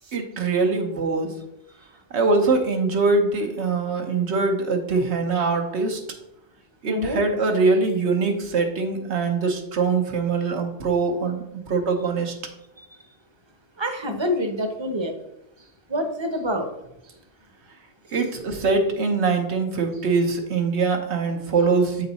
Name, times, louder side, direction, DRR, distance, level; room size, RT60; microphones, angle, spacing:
voice 1, 0.1-1.3 2.1-6.0 6.8-12.3 18.1-22.1, right 4 dB, 85° right, 3 dB, 1.3 m, -23 dB
voice 2, 6.9-7.2 13.8-15.1 15.9-16.7, left 1 dB, 30° right, 5 dB, 0.7 m, -26 dB
7.8 x 3.9 x 4.0 m, 0.86 s
omnidirectional pair, 1.1 m